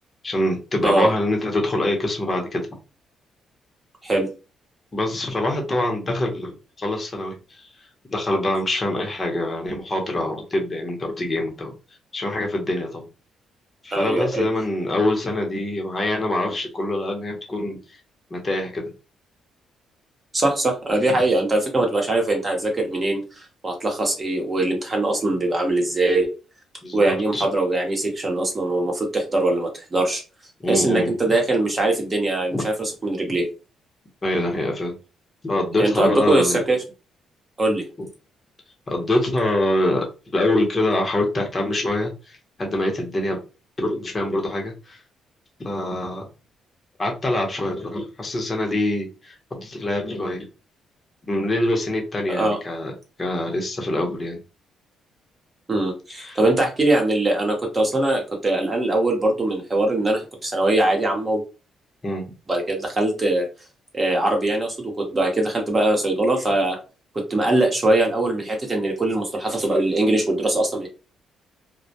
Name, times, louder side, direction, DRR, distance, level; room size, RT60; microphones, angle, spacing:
voice 1, 0.2-2.7 4.9-7.7 8.1-11.7 12.1-13.0 13.8-18.0 18.3-18.9 26.8-27.5 30.6-31.1 32.5-32.6 34.2-34.9 35.4-36.6 38.9-43.4 43.8-45.0 45.6-46.3 47.0-50.5 51.3-52.9 53.2-54.4 56.1-56.4 62.0-62.3, left 1 dB, 30° left, 1 dB, 0.7 m, -25 dB
voice 2, 13.9-14.4 20.3-26.3 26.9-30.2 30.7-33.5 35.8-36.8 37.6-37.8 52.3-52.6 55.7-61.4 62.5-63.5 63.9-66.8 67.1-70.9, right 2 dB, 30° right, 2 dB, 0.8 m, -22 dB
2.1 x 2.1 x 2.7 m, 0.32 s
cardioid pair, 90°, 0 cm